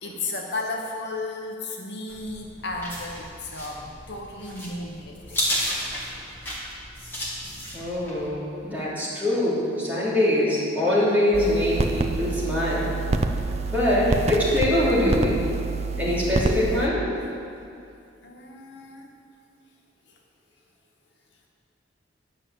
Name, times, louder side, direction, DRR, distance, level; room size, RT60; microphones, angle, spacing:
voice 1, 0.0-5.4 15.4-16.1 18.2-19.1, left 2 dB, 60° left, 0 dB, 1.0 m, -34 dB
sound 1, 2.1-8.3, equal, 10° left, 2.0 m, -33 dB
voice 2, 7.7-12.9 13.7-15.4 16.0-17.0, left 1 dB, 10° right, -10 dB, 3.2 m, -23 dB
sound 2, 11.3-16.9, right 3 dB, 35° right, 0.5 m, -27 dB
10.0 x 6.6 x 7.9 m, 2.5 s
head